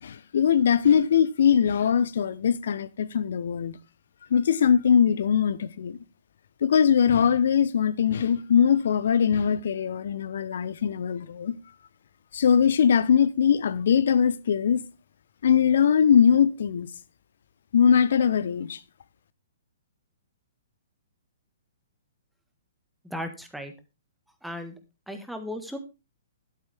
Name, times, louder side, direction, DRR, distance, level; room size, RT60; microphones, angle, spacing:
voice 1, 0.0-3.8 4.3-6.0 6.6-11.6 12.3-14.8 15.4-16.9 17.7-18.8, left 7 dB, 60° left, 0.8 m, -21 dB
voice 2, 23.0-23.7 24.4-24.8 25.1-25.8, left 1 dB, ahead, 1.5 m, -36 dB
11.5 x 8.6 x 3.5 m
figure-of-eight pair, 120°, 0 cm